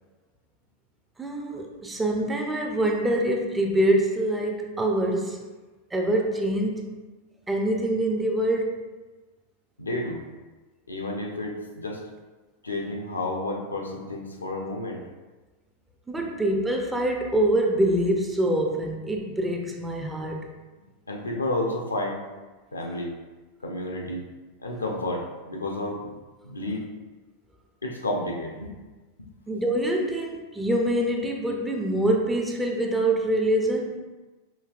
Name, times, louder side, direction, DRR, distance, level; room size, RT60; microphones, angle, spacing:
voice 1, 1.2-5.4 5.9-7.0 7.5-8.9 16.1-20.5 29.5-34.0, right 1 dB, 10° right, 2 dB, 0.5 m, -25 dB
voice 2, 9.8-10.2 10.9-12.0 12.6-15.0 16.2-16.3 21.1-22.2 22.7-23.1 23.6-24.3 24.6-26.1 26.4-26.9 27.8-28.8 29.2-29.3, left 1 dB, 80° left, 1 dB, 0.6 m, -31 dB
5.2 x 2.7 x 2.4 m, 1.2 s
figure-of-eight pair, 90°, 0 cm